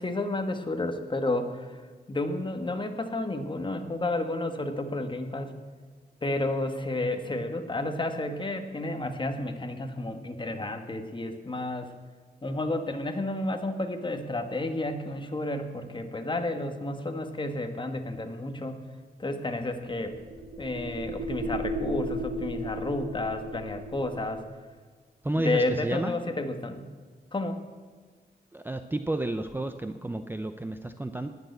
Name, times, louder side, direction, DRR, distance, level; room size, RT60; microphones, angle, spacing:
voice 1, 0.0-1.8 2.1-5.6 6.2-11.9 12.4-18.8 19.2-20.2 20.6-24.5 25.4-26.9 27.3-27.6, left 2 dB, 30° left, 7 dB, 1.4 m, -31 dB
sound 1, 19.5-24.4, right 1 dB, 80° right, 2.2 m, -35 dB
voice 2, 25.2-26.2 28.5-31.3, right 1 dB, 10° right, 8 dB, 0.6 m, -31 dB
19.5 x 6.7 x 8.1 m, 1.5 s
wide cardioid pair, 125°, 17 cm